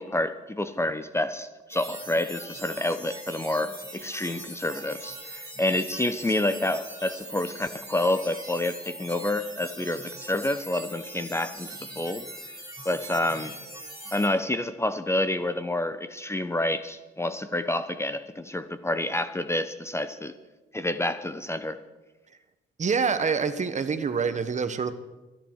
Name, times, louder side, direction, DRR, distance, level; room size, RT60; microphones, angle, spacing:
voice 1, 0.0-12.3 12.8-13.6 14.1-20.4 20.7-21.8, left 1 dB, 15° left, 11 dB, 0.8 m, -28 dB
sound 1, 1.7-14.3, right 1 dB, 15° right, 4.6 m, -41 dB
voice 2, 22.8-24.9, right 5 dB, 35° right, 10 dB, 1.2 m, -26 dB
22.5 x 11.0 x 4.7 m, 1.1 s
cardioid pair, 90°, 20 cm